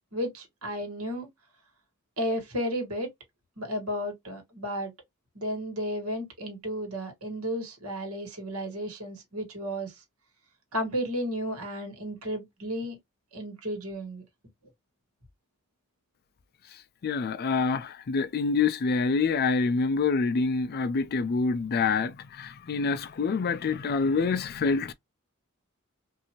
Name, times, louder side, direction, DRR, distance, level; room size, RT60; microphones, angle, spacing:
voice 1, 0.1-1.3 2.2-3.1 3.6-4.9 5.3-9.9 10.7-13.0 13.3-14.2, equal, 75° right, 1.6 m, -33 dB
voice 2, 17.0-24.9, left 4 dB, 45° left, 0.4 m, -26 dB
2.6 x 2.6 x 2.8 m
head